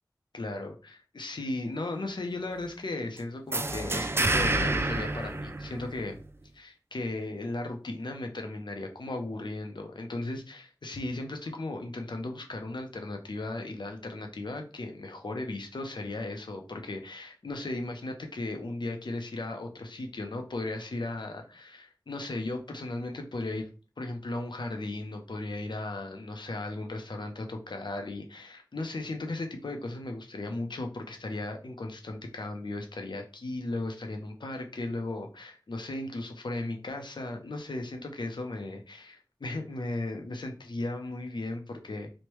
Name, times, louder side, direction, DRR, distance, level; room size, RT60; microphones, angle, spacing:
voice 1, 0.3-6.2 6.5-42.1, left 2 dB, 80° left, 4 dB, 0.6 m, -36 dB
sound 1, 3.5-6.2, right 2 dB, 30° right, 0.3 m, -28 dB
3.1 x 2.1 x 3.0 m, 0.34 s
wide cardioid pair, 50°, 8 cm